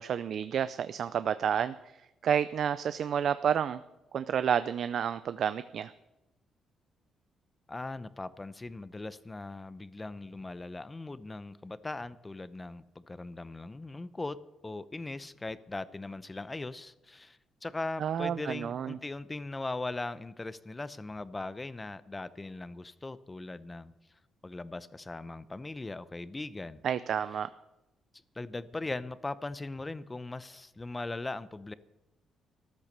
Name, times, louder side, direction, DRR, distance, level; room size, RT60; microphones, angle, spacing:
voice 1, 0.0-1.7 2.2-3.8 4.1-5.9 18.0-19.0 26.8-27.5, right 8 dB, 60° right, 13 dB, 0.5 m, -30 dB
voice 2, 7.7-14.4 14.6-23.9 24.4-26.8 28.3-31.7, left 2 dB, 20° left, 16 dB, 0.7 m, -39 dB
14.0 x 12.0 x 6.7 m, 0.96 s
cardioid pair, 110°, 0 cm